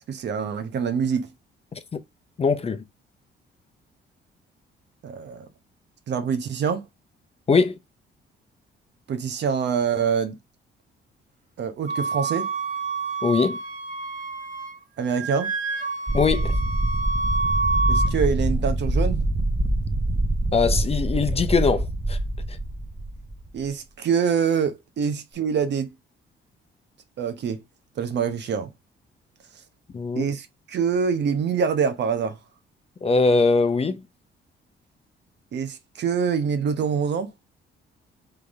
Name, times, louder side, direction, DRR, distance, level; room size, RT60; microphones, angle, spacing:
voice 1, 0.1-1.3 5.0-5.5 6.1-6.9 9.1-10.4 11.6-12.5 15.0-15.5 17.9-19.2 23.5-25.9 27.2-27.6 28.0-28.7 30.1-32.4 35.5-37.3, right 6 dB, 60° right, 0.9 m, -25 dB
voice 2, 2.4-2.8 7.5-7.8 13.2-13.6 16.1-16.6 20.5-22.2 22.5-22.6 29.9-30.3 33.0-34.0, left 4 dB, 30° left, 0.7 m, -21 dB
Wind instrument woodwind instrument, 11.9-14.8 15.0-18.1, right 3 dB, 40° right, 1.2 m, -28 dB
sound 1, 16.1-23.7, right 1 dB, 15° right, 1.0 m, -25 dB
3.8 x 3.4 x 3.5 m
cardioid pair, 90°, 20 cm